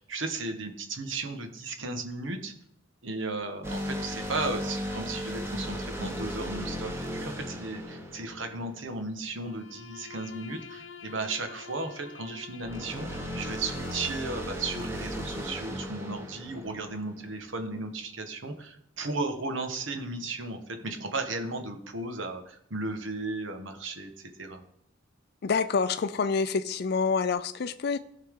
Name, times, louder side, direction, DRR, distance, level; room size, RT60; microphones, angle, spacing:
voice 1, 0.0-2.5 3.0-24.1 24.4-24.6, right 3 dB, 80° right, 6 dB, 1.4 m, -35 dB
sound 1, 3.6-9.1 12.6-17.4, equal, 15° right, 1.2 m, -36 dB
Bowed string instrument, 9.4-14.3, left 6 dB, 90° left, 0.8 m, -47 dB
voice 2, 25.4-28.0, left 5 dB, 55° left, 11 dB, 0.4 m, -27 dB
16.0 x 5.7 x 3.7 m, 0.72 s
head